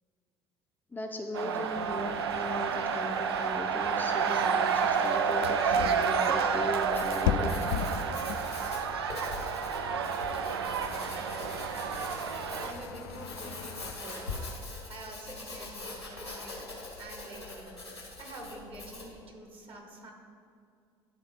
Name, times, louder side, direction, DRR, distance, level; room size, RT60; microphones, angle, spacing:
voice 1, 0.9-7.7, left 2 dB, 15° left, 2 dB, 0.5 m, -38 dB
sound 1, 1.3-12.7, right 6 dB, 75° right, 0.4 m, -30 dB
sound 2, 1.7-13.9, left 8 dB, 65° left, 0.4 m, -39 dB
Writing, 6.7-19.2, left 2 dB, 90° left, 1.3 m, -42 dB
voice 2, 12.6-14.3 14.9-16.7 16.9-17.7 18.1-20.1, right 2 dB, 45° right, 1 dB, 1.5 m, -46 dB
10.5 x 3.6 x 5.0 m, 2.3 s
figure-of-eight pair, 55°, 13 cm